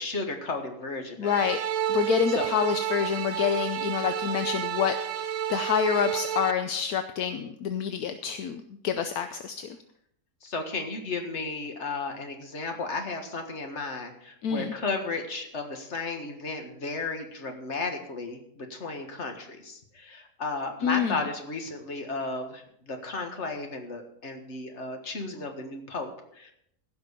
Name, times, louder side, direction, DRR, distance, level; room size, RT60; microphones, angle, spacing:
voice 1, 0.0-1.4 2.3-2.5 10.4-26.5, left 3 dB, 50° left, 5 dB, 1.9 m, -34 dB
voice 2, 1.2-1.6 1.9-9.8 14.4-14.7 20.8-21.2, left 8 dB, 75° left, 8 dB, 1.2 m, -27 dB
sound 1, 1.2-6.5, right 10 dB, 60° right, 1.1 m, -30 dB
16.0 x 6.0 x 6.6 m, 0.71 s
omnidirectional pair, 1.6 m